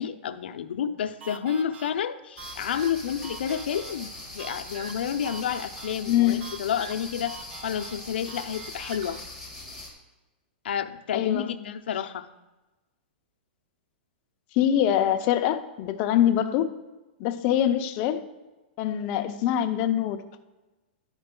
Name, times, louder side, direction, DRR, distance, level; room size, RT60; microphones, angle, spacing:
voice 1, 0.0-9.2 10.6-12.2, left 8 dB, 80° left, 8 dB, 0.5 m, -30 dB
sound 1, 1.2-9.2, right 6 dB, 85° right, 0.6 m, -45 dB
sound 2, 2.4-9.9, left 2 dB, 10° right, 1.3 m, -41 dB
voice 2, 6.1-6.4 11.1-11.5 14.5-16.7 17.2-18.2 18.8-20.2, left 11 dB, 30° left, 7 dB, 0.5 m, -24 dB
10.5 x 5.2 x 3.7 m, 1.1 s
supercardioid pair, 165°, 6 cm